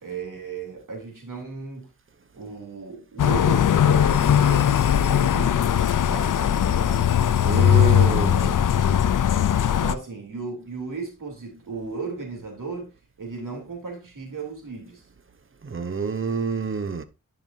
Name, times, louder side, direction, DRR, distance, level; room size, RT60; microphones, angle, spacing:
voice 1, 0.0-1.9 2.3-7.1 7.6-8.1 8.4-8.6 9.7-12.9 13.2-15.0, right 4 dB, 80° right, 3.0 m, -35 dB
sound 1, 3.2-9.9, left 9 dB, 75° left, 0.5 m, -19 dB
voice 2, 7.4-8.5 15.6-17.0, right 5 dB, 40° right, 0.8 m, -27 dB
10.5 x 5.9 x 2.6 m
wide cardioid pair, 75°, 31 cm